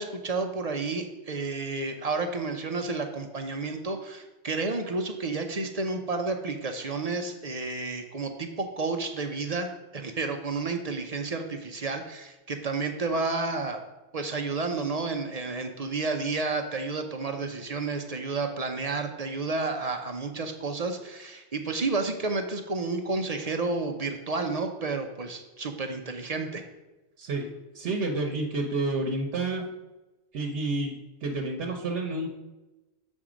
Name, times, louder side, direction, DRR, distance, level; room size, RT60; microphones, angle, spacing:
voice 1, 0.0-13.8 14.1-26.6, right 3 dB, 45° right, 5 dB, 0.6 m, -31 dB
voice 2, 27.2-27.5 27.7-29.7 30.3-30.9 31.2-32.3, right 2 dB, 75° right, 2 dB, 1.1 m, -29 dB
7.3 x 4.3 x 5.0 m, 1.1 s
omnidirectional pair, 1.1 m